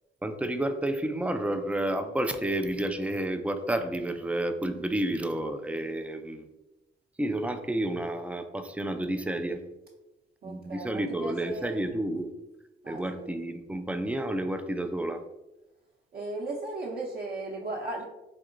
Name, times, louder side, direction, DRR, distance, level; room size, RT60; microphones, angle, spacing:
voice 1, 0.2-6.5 7.2-9.6 10.4-12.3 12.9-15.2, right 1 dB, 5° right, 7 dB, 0.3 m, -30 dB
voice 2, 10.4-11.9 12.8-13.4 16.1-18.0, right 2 dB, 50° right, -5 dB, 0.7 m, -36 dB
4.2 x 2.8 x 2.5 m, 1.0 s
cardioid pair, 90°, 20 cm